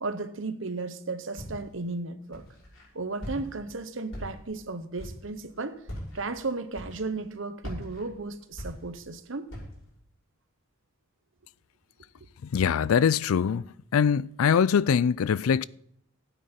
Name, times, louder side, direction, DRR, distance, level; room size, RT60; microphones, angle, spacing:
voice 1, 0.0-2.4 2.9-5.8 6.1-9.5, right 3 dB, 65° right, 1.0 m, -34 dB
Walk footsteps, 1.4-1.8 2.3-2.8 3.2-3.7 4.1-4.6 4.9-5.3 5.8-6.2 6.7-7.2 7.6-9.1 9.5-9.9, equal, 65° left, 6.6 m, -40 dB
voice 2, 12.5-13.6 13.9-15.6, left 7 dB, 80° left, 0.4 m, -23 dB
16.0 x 9.3 x 4.4 m
head